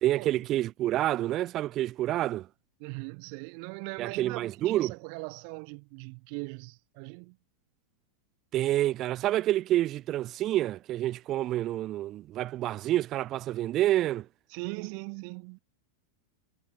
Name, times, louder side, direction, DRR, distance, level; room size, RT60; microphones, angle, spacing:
voice 1, 0.0-2.5 4.0-4.9 8.5-14.3, right 14 dB, 30° right, 0.5 m, -28 dB
voice 2, 2.8-7.4 14.5-15.6, right 40 dB or more, 45° right, 2.4 m, -40 dB
supercardioid pair, 160°, 0 cm